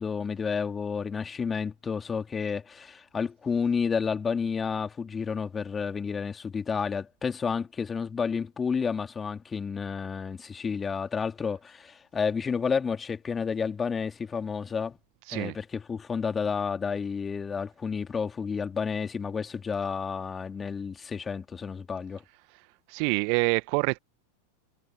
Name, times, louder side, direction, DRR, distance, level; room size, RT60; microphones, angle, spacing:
voice 1, 0.0-15.0 15.3-22.2, left 6 dB, 15° left, 2.4 m, -30 dB
voice 2, 22.9-24.0, right 40 dB or more, 45° right, 1.8 m, -26 dB
figure-of-eight pair, 90°, 0 cm